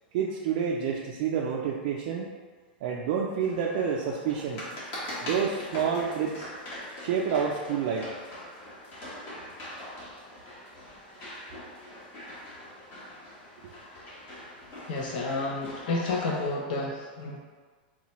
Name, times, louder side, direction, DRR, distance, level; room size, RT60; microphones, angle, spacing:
voice 1, 0.1-2.3 2.8-4.6 5.2-6.5 7.0-8.1, right 7 dB, 60° right, -3 dB, 0.4 m, -28 dB
sound 1, 3.4-16.5, left 1 dB, 40° left, 1.2 m, -42 dB
voice 2, 14.9-17.4, left 3 dB, 60° left, -2 dB, 0.5 m, -30 dB
3.9 x 2.2 x 2.9 m, 1.5 s
supercardioid pair, 140°, 5 cm